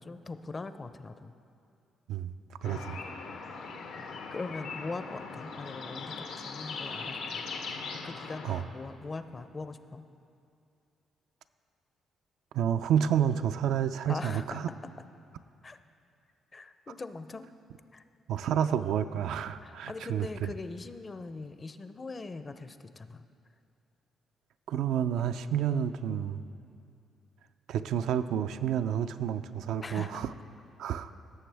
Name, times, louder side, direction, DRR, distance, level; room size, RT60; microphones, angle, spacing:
voice 1, 0.0-1.3 2.6-3.0 4.3-7.4 7.9-10.0 14.1-14.6 15.6-15.8 16.5-17.5 17.9-18.0 19.6-23.3 29.8-30.2, left 3 dB, 30° left, 11 dB, 0.5 m, -41 dB
sound 1, 2.6-8.6, left 4 dB, 85° left, 0.9 m, -40 dB
voice 2, 2.6-3.0 8.4-8.6 12.5-14.7 18.3-20.3 24.7-26.4 27.7-30.3 30.8-31.1, right 9 dB, 80° right, 10 dB, 0.3 m, -29 dB
17.5 x 7.0 x 3.4 m, 2.5 s
cardioid pair, 90°, 0 cm